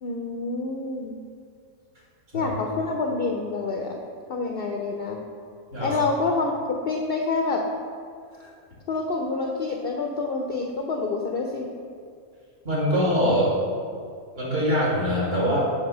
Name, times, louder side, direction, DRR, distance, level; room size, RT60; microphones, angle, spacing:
voice 1, 0.0-1.2 2.3-4.0 4.3-5.2 5.8-6.6 6.9-7.6 8.9-11.7, left 3 dB, 65° left, 2 dB, 0.6 m, -27 dB
voice 2, 12.6-13.5 14.4-15.6, equal, 45° right, -6 dB, 2.0 m, -23 dB
7.3 x 2.9 x 6.0 m, 2.2 s
omnidirectional pair, 1.4 m